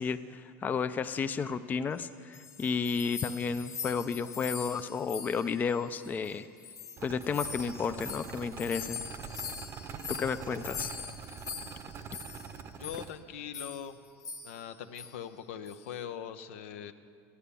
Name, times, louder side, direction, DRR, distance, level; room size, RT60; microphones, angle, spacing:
voice 1, 0.0-6.5 7.0-9.0 10.1-10.9, left 5 dB, 25° left, 11 dB, 0.4 m, -32 dB
sound 1, 2.1-6.3 6.6-12.5 12.8-13.1 13.5-13.9 14.2-14.7 15.0-15.2 15.7-15.9, left 6 dB, 50° left, 1.1 m, -43 dB
sound 2, 7.0-13.1, right 7 dB, 40° right, 0.7 m, -44 dB
voice 2, 12.8-14.0 14.4-16.9, left 9 dB, 85° left, 9 dB, 0.7 m, -41 dB
14.0 x 10.0 x 6.9 m, 2.2 s
supercardioid pair, 115°, 7 cm